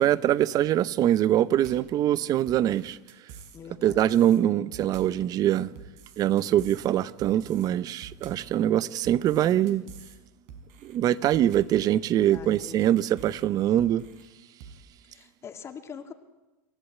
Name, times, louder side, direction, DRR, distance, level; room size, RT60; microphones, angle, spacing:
voice 1, 0.0-3.0 3.8-5.7 6.2-9.8 10.8-14.1, right 12 dB, 40° right, 0.8 m, -23 dB
sound 1, 1.6-2.0 2.5-3.6 3.9-4.4 4.7-5.2 5.8-6.9 7.2-7.7 8.0-8.5 9.0-10.2 10.5-11.0 11.3-11.8 12.3-13.5 13.8-14.3 14.6-14.8, right 6 dB, 70° right, 4.4 m, -47 dB
voice 2, 3.5-4.0 12.2-13.0 15.1-16.1, left 6 dB, 30° left, 2.2 m, -43 dB
27.5 x 15.0 x 8.5 m
supercardioid pair, 120°, 10 cm